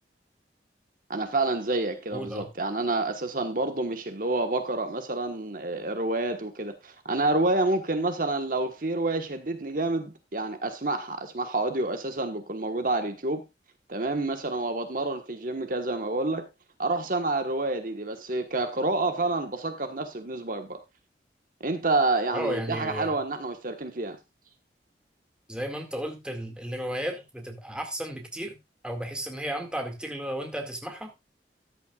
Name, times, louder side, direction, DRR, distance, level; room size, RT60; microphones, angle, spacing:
voice 1, 1.1-13.4 13.9-16.5 16.8-20.8 21.6-24.2, right 2 dB, 50° right, 1.3 m, -28 dB
voice 2, 2.1-2.5 22.3-23.2 25.5-28.6 28.8-31.1, equal, 5° right, 2.0 m, -34 dB
13.5 x 10.5 x 2.4 m
head